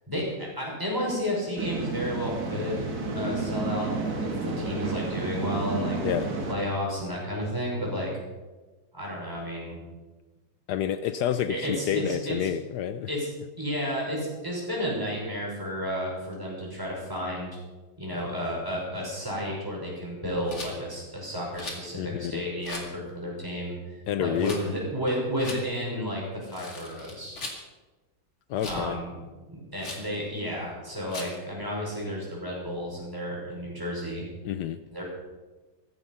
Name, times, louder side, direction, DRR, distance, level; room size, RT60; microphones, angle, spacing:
voice 1, 0.6-2.9 3.1-8.1 8.9-9.8 11.5-12.5 13.1-13.3 13.6-17.5 18.0-27.4 28.6-29.1 29.5-34.2 34.9-35.0, equal, 10° right, -4 dB, 5.8 m, -32 dB
sound 1, 1.6-6.5, right 3 dB, 60° right, 2.2 m, -31 dB
voice 2, 10.7-13.1 21.9-22.4 24.1-24.6 28.5-29.0 34.4-34.8, left 10 dB, 75° left, 11 dB, 1.2 m, -29 dB
Rattle, 20.5-20.7 21.5-21.9 22.6-22.9 24.4-24.6 25.4-25.6 26.4-27.6 28.6-28.9 29.8-30.1 31.1-31.4, left 2 dB, 40° left, 2.5 m, -39 dB
15.0 x 14.0 x 5.5 m, 1.2 s
omnidirectional pair, 1.8 m